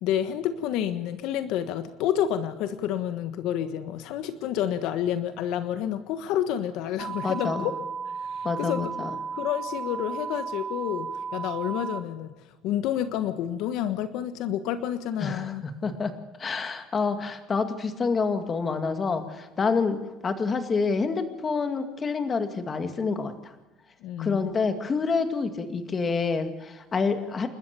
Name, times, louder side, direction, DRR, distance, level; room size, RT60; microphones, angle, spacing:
voice 1, 0.0-7.7 8.2-8.9 9.3-12.3 12.6-15.6 24.0-24.5, left 10 dB, 65° left, 10 dB, 1.3 m, -29 dB
sound 1, 7.0-12.0, right 5 dB, 35° right, 2.2 m, -34 dB
voice 2, 7.2-7.7 8.4-9.2 15.2-16.1 16.4-20.0 20.2-23.5 24.2-27.5, left 4 dB, 25° left, 8 dB, 2.3 m, -27 dB
29.5 x 13.0 x 6.9 m, 1.1 s
cardioid pair, 140°, 0 cm